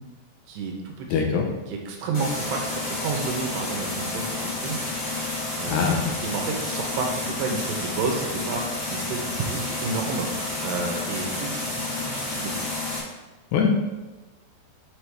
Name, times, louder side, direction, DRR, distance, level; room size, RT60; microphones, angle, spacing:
voice 1, 0.5-1.3 1.7-4.8 5.6-10.3 10.6-12.5, right 4 dB, 75° right, 1 dB, 2.8 m, -31 dB
voice 2, 1.1-1.5 5.7-6.0 13.5-13.7, left 6 dB, 75° left, 1 dB, 2.9 m, -22 dB
sound 1, 2.1-13.0, left 2 dB, 50° left, 1.2 m, -30 dB
7.8 x 6.2 x 3.5 m, 1.1 s
omnidirectional pair, 5.4 m